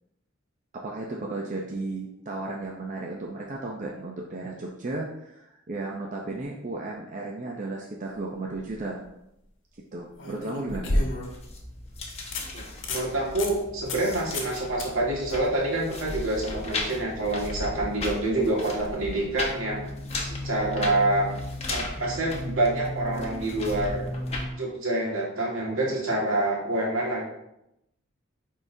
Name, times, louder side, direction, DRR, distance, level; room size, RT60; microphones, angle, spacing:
voice 1, 0.7-9.0 9.9-11.0, right 2 dB, 35° right, -2 dB, 0.6 m, -34 dB
sound 1, 8.4-8.8 10.2-11.5 11.9-12.0 12.3-12.4 12.8-13.1 13.4-13.5 13.9-14.1 14.3-14.5 14.8-14.9 18.0-18.1, left 1 dB, 60° left, 1.1 m, -29 dB
sound 2, 11.2-24.5, left 2 dB, 30° left, 0.9 m, -35 dB
voice 2, 12.5-19.8 20.2-21.3 21.7-24.0 24.6-27.2, right 2 dB, 70° right, -3 dB, 1.8 m, -27 dB
9.4 x 3.7 x 2.7 m, 0.84 s
head